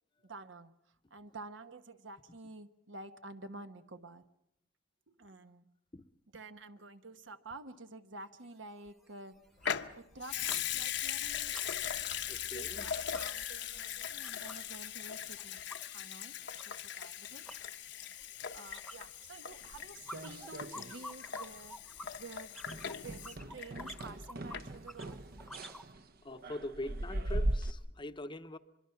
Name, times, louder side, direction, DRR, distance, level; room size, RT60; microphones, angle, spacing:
voice 1, 0.2-0.7 1.1-4.3 5.1-5.7 6.3-9.4 10.0-11.7 12.4-15.6 15.9-16.4 16.6-17.4 18.5-22.6 23.0-25.2, right 3 dB, 75° right, 1.1 m, -50 dB
sound 1, 8.4-8.5 8.9-9.1 9.4-10.7 11.0-14.7 15.0-25.9, left 1 dB, ahead, 1.0 m, -51 dB
Water tap faucet / Sink (filling or washing) / Liquid, 9.6-24.2 24.5-24.6, left 9 dB, 65° left, 0.9 m, -40 dB
voice 2, 12.3-12.9 26.2-28.6, left 1 dB, 25° left, 0.8 m, -43 dB
sound 2, 19.6-21.1 21.3-21.7 22.0-22.2 22.6-27.7, right 1 dB, 50° right, 0.8 m, -39 dB
25.0 x 22.5 x 5.8 m
head